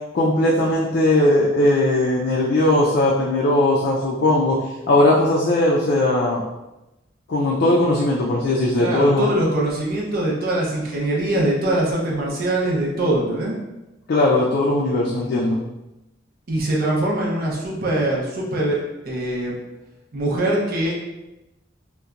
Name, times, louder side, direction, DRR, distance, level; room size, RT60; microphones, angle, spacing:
voice 1, 0.1-4.6 4.9-6.4 7.3-9.3 14.1-15.6, left 1 dB, 55° left, -4 dB, 0.4 m, -18 dB
voice 2, 8.8-13.6 16.5-19.6 20.1-21.0, right 1 dB, 55° right, -3 dB, 0.6 m, -22 dB
2.8 x 2.2 x 2.4 m, 0.97 s
head